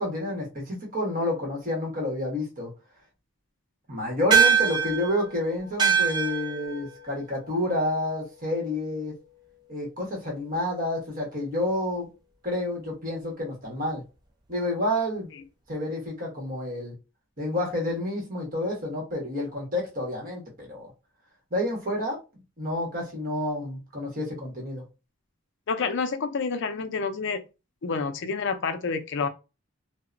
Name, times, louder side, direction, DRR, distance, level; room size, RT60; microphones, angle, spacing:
voice 1, 0.0-2.7 3.9-9.1 9.7-12.1 12.4-14.0 14.5-15.3 15.7-16.9 17.4-20.9 21.5-22.2 22.6-24.8, left 1 dB, 40° right, 1.2 m, -29 dB
sound 1, 4.3-9.0, right 7 dB, 20° right, 0.4 m, -25 dB
voice 2, 25.7-27.4 27.8-29.3, left 5 dB, 60° left, 0.4 m, -28 dB
2.8 x 2.1 x 2.4 m
head